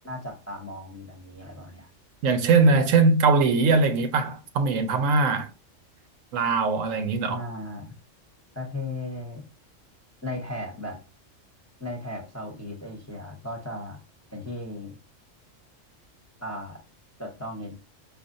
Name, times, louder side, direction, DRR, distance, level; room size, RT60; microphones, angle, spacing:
voice 1, 0.0-1.9 7.3-7.9 8.6-9.4 10.2-11.0 11.8-14.0 14.3-15.0 16.4-16.8 17.2-17.7, left 1 dB, 15° left, 0.7 m, -36 dB
voice 2, 2.2-5.5 6.3-7.5, right 4 dB, 85° right, 1.0 m, -21 dB
4.9 x 2.5 x 2.5 m
omnidirectional pair, 1.3 m